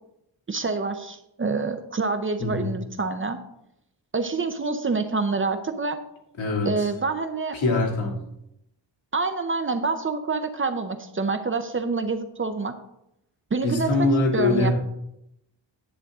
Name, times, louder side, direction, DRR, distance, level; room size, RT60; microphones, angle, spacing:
voice 1, 0.5-3.4 4.1-6.0 6.6-7.6 9.1-12.8 13.5-14.1 14.3-14.7, right 4 dB, 30° right, 8 dB, 0.6 m, -27 dB
voice 2, 6.4-6.7 7.5-8.2 13.6-14.7, left 2 dB, 85° left, 0 dB, 2.4 m, -23 dB
10.5 x 7.9 x 3.6 m, 0.82 s
wide cardioid pair, 175°, 44 cm